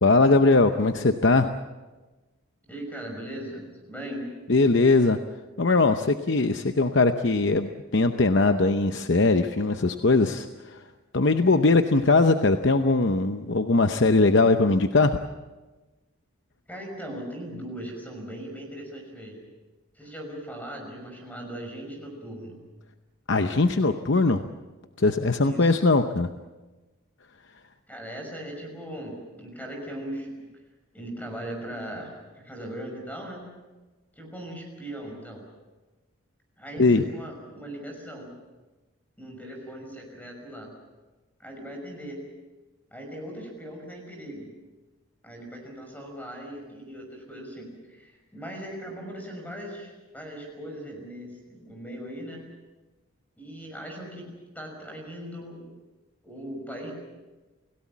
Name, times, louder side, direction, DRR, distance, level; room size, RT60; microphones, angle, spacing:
voice 1, 0.0-1.5 4.5-5.2 5.6-10.8 11.1-15.2 23.3-24.4 25.0-26.3 36.8-37.0, left 3 dB, 55° left, 7 dB, 0.8 m, -21 dB
voice 2, 2.7-4.3 16.7-19.4 19.9-22.6 25.4-25.7 27.9-30.5 30.9-33.5 34.1-35.4 36.6-38.3 39.2-40.7 41.4-42.3 42.9-44.5 45.2-52.4 53.4-54.3 54.5-55.7 56.2-56.9, right 1 dB, 5° left, 2 dB, 5.9 m, -39 dB
29.5 x 17.0 x 7.4 m, 1.2 s
head